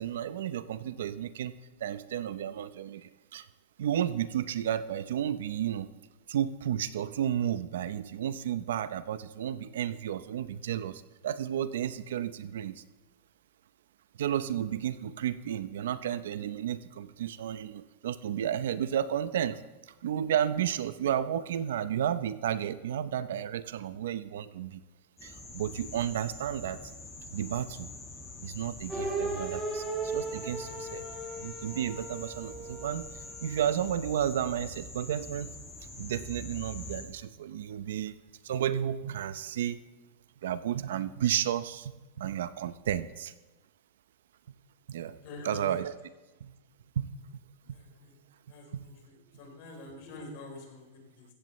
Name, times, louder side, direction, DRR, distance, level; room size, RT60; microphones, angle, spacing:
voice 1, 0.0-1.5 1.8-3.5 3.8-5.9 6.3-12.8 14.2-19.6 19.9-24.8 25.2-26.8 27.3-27.9 28.4-31.0 31.4-35.6 36.0-39.8 40.4-43.3 44.9-45.2 45.4-45.9 46.4-46.5 47.0-47.1 48.7-48.9, right 10 dB, 75° right, 14 dB, 0.7 m, -32 dB
sound 1, 25.2-37.0, left 2 dB, 10° left, 2.1 m, -45 dB
sound 2, 28.9-33.9, right 3 dB, 5° right, 1.9 m, -37 dB
voice 2, 45.2-45.7 47.7-48.1 48.5-51.3, left 2 dB, 45° left, 1 dB, 3.5 m, -46 dB
15.5 x 15.0 x 3.2 m, 1.1 s
supercardioid pair, 175°, 0 cm